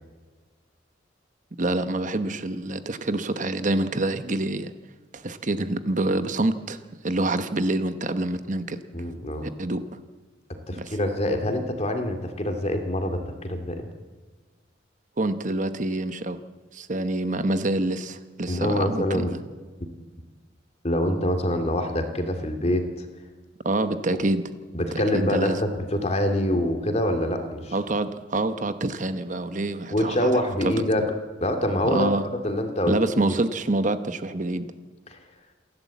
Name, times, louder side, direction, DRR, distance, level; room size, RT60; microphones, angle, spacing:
voice 1, 1.6-4.7 5.1-6.8 7.0-8.8 9.6-9.8 10.8-11.0 15.2-16.4 16.7-19.4 23.6-24.4 25.1-25.6 27.7-30.7 31.8-32.3 32.9-34.7, right 2 dB, 40° right, 10 dB, 1.0 m, -26 dB
voice 2, 8.9-9.5 10.7-13.9 18.5-19.3 20.8-23.1 24.7-27.7 29.9-31.1 31.4-32.1 32.4-33.4 35.1-35.2, left 1 dB, 35° left, 6 dB, 2.4 m, -25 dB
28.0 x 11.5 x 8.4 m, 1.4 s
head